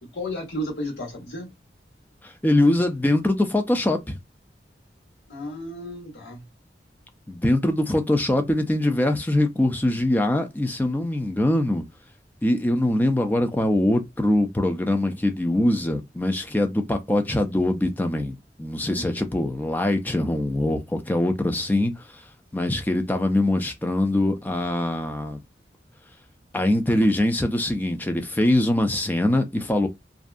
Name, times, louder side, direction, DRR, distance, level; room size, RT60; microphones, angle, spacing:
voice 1, 0.0-1.5 5.3-6.5 18.9-19.1, equal, 80° left, 1.3 m, -33 dB
voice 2, 2.2-4.2 7.3-11.8 12.4-22.2 22.5-25.4 26.5-29.9, left 1 dB, 10° left, 0.3 m, -23 dB
2.6 x 2.2 x 2.4 m
head